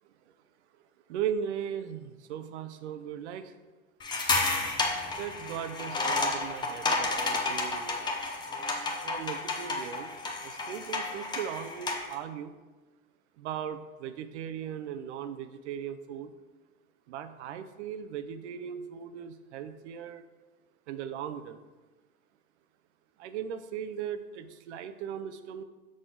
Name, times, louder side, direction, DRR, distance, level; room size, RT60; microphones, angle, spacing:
voice 1, 1.1-3.5 5.2-8.1 9.0-10.1 10.4-12.5 13.4-16.3 17.1-20.2 20.9-21.6 23.2-25.6, right 8 dB, 50° right, 11 dB, 0.7 m, -38 dB
sound 1, 4.0-12.1, left 3 dB, 10° left, 0.7 m, -31 dB
6.3 x 6.2 x 3.8 m, 1.2 s
hypercardioid pair, 125°, 43 cm